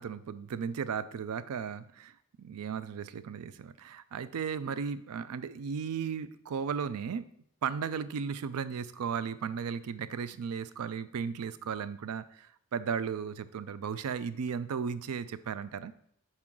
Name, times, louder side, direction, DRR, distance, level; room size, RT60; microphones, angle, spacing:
voice 1, 0.0-7.3 7.6-15.9, right 6 dB, 90° right, 14 dB, 0.4 m, -35 dB
6.0 x 4.2 x 3.8 m, 0.69 s
head